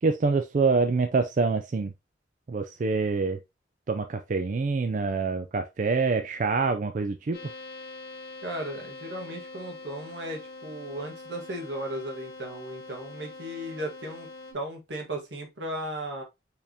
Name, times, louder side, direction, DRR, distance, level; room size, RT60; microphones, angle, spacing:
voice 1, 0.0-1.9 2.5-3.4 3.9-7.4, right 4 dB, 45° right, 0.3 m, -26 dB
sound 1, 7.3-14.5, left 2 dB, 65° left, 1.2 m, -44 dB
voice 2, 8.4-14.3 14.5-16.2, right 1 dB, 85° right, 1.6 m, -36 dB
4.5 x 3.4 x 2.8 m
head